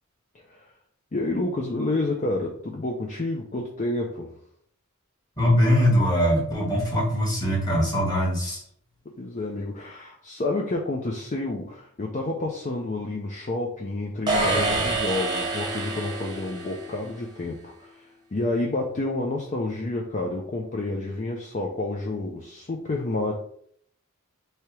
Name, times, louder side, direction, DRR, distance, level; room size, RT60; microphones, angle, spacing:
voice 1, 1.1-4.3 9.2-18.0 18.3-23.3, left 2 dB, 35° left, 0 dB, 0.5 m, -29 dB
voice 2, 5.4-8.6, equal, 20° left, -4 dB, 1.5 m, -22 dB
sound 1, 14.3-17.1, right 3 dB, 20° right, 0.9 m, -27 dB
3.3 x 2.8 x 4.6 m, 0.64 s
head